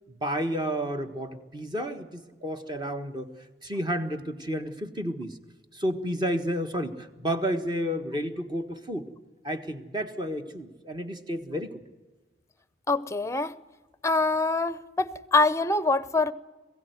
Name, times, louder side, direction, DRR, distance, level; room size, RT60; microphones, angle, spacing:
voice 1, 0.2-3.3 3.6-5.3 5.7-9.0 9.4-11.8, equal, 25° right, 1.5 m, -31 dB
voice 2, 12.9-13.5 14.0-16.3, left 3 dB, 15° left, 0.7 m, -24 dB
22.0 x 16.0 x 9.4 m
head